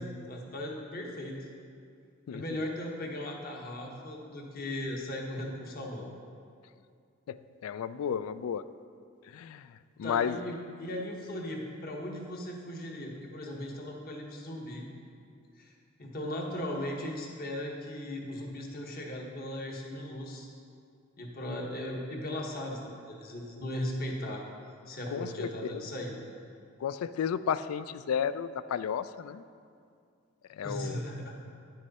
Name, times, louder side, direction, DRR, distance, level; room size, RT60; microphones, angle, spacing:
voice 1, 0.0-1.5 2.3-6.1 10.0-14.8 15.6-15.7 16.0-20.5 21.2-24.4 24.9-26.2 30.6-31.4, left 1 dB, 45° left, 0 dB, 1.2 m, -37 dB
voice 2, 2.3-2.6 7.3-8.6 9.2-10.4 25.1-25.9 26.8-29.4 30.5-31.0, left 8 dB, 85° left, 14 dB, 0.3 m, -33 dB
9.5 x 6.4 x 4.1 m, 2.3 s
head